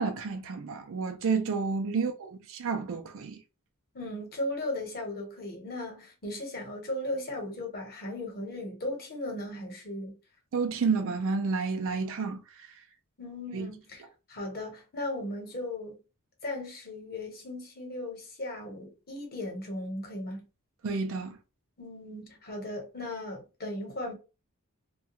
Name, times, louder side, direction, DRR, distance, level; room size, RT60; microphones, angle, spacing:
voice 1, 0.0-3.4 10.5-12.7 13.5-13.7 20.8-21.4, right 4 dB, 60° right, 0.4 m, -30 dB
voice 2, 3.9-10.2 13.2-14.0 14.3-16.0 16.4-20.4 21.8-24.1, left 1 dB, 45° left, 1.0 m, -37 dB
2.3 x 2.2 x 2.8 m
head